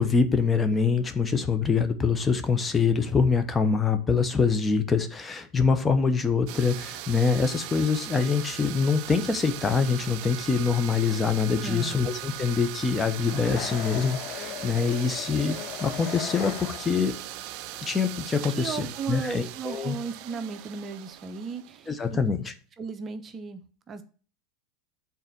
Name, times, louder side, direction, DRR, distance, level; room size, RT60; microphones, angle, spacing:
voice 1, 0.0-17.2 17.8-19.9 21.9-22.5, left 5 dB, 20° left, 9 dB, 1.0 m, -25 dB
sound 1, 6.5-22.2, right 13 dB, 60° right, 0.5 m, -39 dB
voice 2, 11.6-12.0 18.5-22.2 22.8-23.6 23.9-24.0, right 5 dB, 30° right, 10 dB, 0.8 m, -36 dB
sound 2, 13.2-17.1, left 12 dB, 50° left, 0.6 m, -38 dB
6.7 x 4.1 x 6.0 m, 0.39 s
hypercardioid pair, 100°, 0 cm